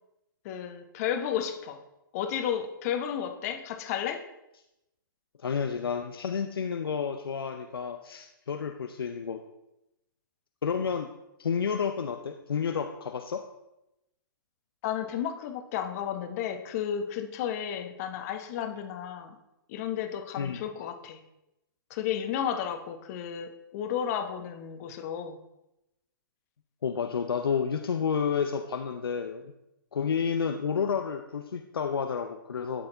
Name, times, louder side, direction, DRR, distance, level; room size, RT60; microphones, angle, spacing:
voice 1, 0.4-1.8 2.1-4.2 14.8-19.4 19.7-21.2 21.9-25.4, left 9 dB, 45° left, 6 dB, 1.0 m, -32 dB
voice 2, 5.4-9.4 10.6-11.1 11.4-13.4 20.4-20.6 26.8-29.5 29.9-32.9, left 6 dB, 80° left, 6 dB, 0.6 m, -30 dB
12.0 x 4.2 x 3.9 m, 0.90 s
hypercardioid pair, 125°, 12 cm